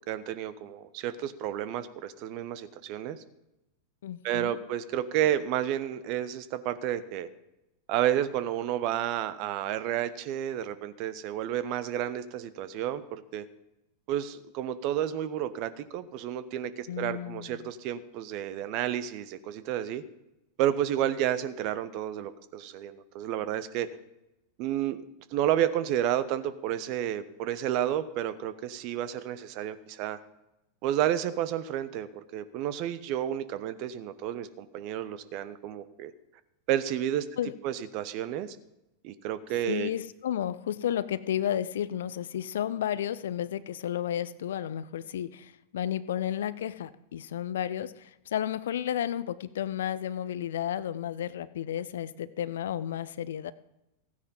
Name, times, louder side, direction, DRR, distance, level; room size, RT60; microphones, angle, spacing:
voice 1, 0.1-3.2 4.2-7.3 7.9-13.4 14.1-20.0 20.6-23.9 24.6-25.0 25.3-30.2 30.8-36.1 36.7-37.3 37.6-38.6 39.0-39.9, right 11 dB, 45° right, 14 dB, 1.0 m, -31 dB
voice 2, 4.0-4.6 16.9-17.7 37.4-37.5 39.7-53.5, left 10 dB, 60° left, 17 dB, 0.5 m, -32 dB
15.5 x 9.7 x 5.4 m, 0.92 s
figure-of-eight pair, 90°, 0 cm